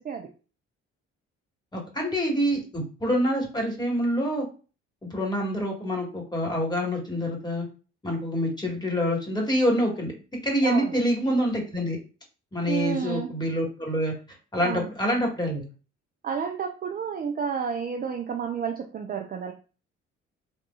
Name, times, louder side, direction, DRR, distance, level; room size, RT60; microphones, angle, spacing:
voice 1, 1.7-4.4 5.0-7.6 8.0-10.1 10.4-12.0 12.5-14.1 14.5-15.6, equal, 10° left, -1 dB, 1.6 m, -26 dB
voice 2, 10.6-11.0 12.7-13.3 14.6-14.9 16.2-19.5, right 6 dB, 25° right, 2 dB, 0.5 m, -30 dB
5.1 x 2.7 x 2.4 m, 0.35 s
figure-of-eight pair, 45°, 36 cm